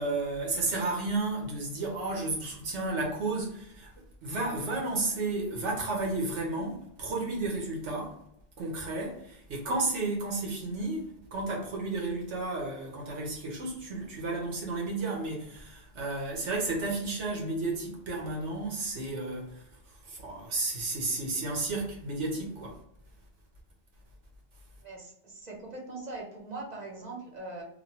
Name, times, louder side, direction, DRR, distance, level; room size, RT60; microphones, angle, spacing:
voice 1, 0.0-3.9 4.2-8.1 8.6-19.6 20.0-22.8, right 2 dB, 90° right, 1.3 m, -32 dB
voice 2, 24.8-27.6, right 2 dB, 40° right, 0.8 m, -41 dB
3.1 x 2.3 x 2.8 m
omnidirectional pair, 1.2 m